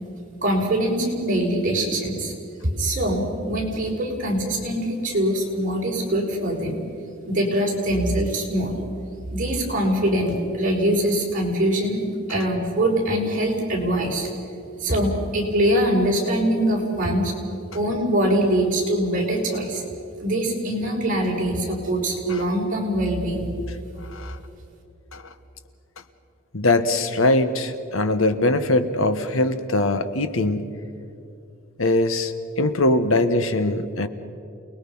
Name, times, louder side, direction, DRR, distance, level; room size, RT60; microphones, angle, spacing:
voice 1, 0.4-2.3 2.8-6.8 7.3-8.7 9.3-12.0 12.3-14.3 14.8-17.4 17.7-19.8 20.2-23.5, right 1 dB, 40° right, -2 dB, 5.4 m, -23 dB
voice 2, 26.5-30.7 31.8-34.1, left 2 dB, 85° left, 10 dB, 1.4 m, -22 dB
29.0 x 20.0 x 5.6 m, 2.6 s
head